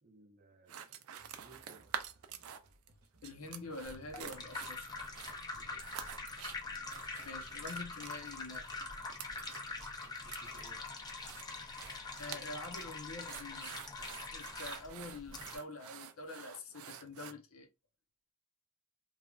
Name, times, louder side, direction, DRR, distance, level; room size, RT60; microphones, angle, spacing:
voice 1, 0.0-1.0 1.4-1.9 5.6-5.9 10.2-10.8, right 3 dB, 45° right, 0.6 m, -61 dB
sound 1, 0.7-2.9 3.2-17.3, right 9 dB, 90° right, 0.4 m, -48 dB
sound 2, 1.2-7.8, right 2 dB, 70° right, 1.0 m, -65 dB
voice 2, 3.2-4.9 7.2-8.7 12.2-13.7 14.3-17.7, left 2 dB, 80° left, 0.7 m, -46 dB
sound 3, 3.8-15.6, left 3 dB, 20° left, 0.5 m, -44 dB
3.1 x 2.3 x 2.3 m
head